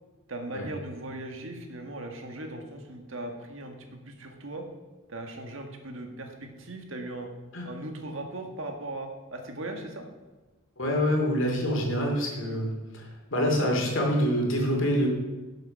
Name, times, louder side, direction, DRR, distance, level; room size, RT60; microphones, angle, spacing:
voice 1, 0.3-4.7 5.1-7.3 7.6-10.1, right 2 dB, 65° right, 4 dB, 1.7 m, -38 dB
voice 2, 10.8-15.1, equal, 60° left, 0 dB, 2.9 m, -26 dB
12.0 x 7.9 x 5.3 m, 1.2 s
head